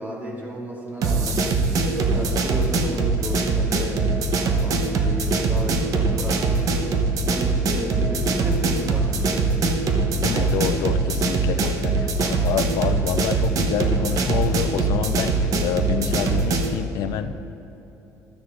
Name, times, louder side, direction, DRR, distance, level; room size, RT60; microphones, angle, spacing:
voice 1, 0.0-4.1 4.6-6.9 7.2-9.4, equal, 25° right, -4 dB, 2.3 m, -33 dB
sound 1, 1.0-16.8, right 3 dB, 60° right, 0.9 m, -22 dB
voice 2, 10.2-17.3, left 9 dB, 80° left, 10 dB, 0.4 m, -27 dB
13.0 x 9.4 x 2.5 m, 3.0 s
cardioid pair, 105°, 7 cm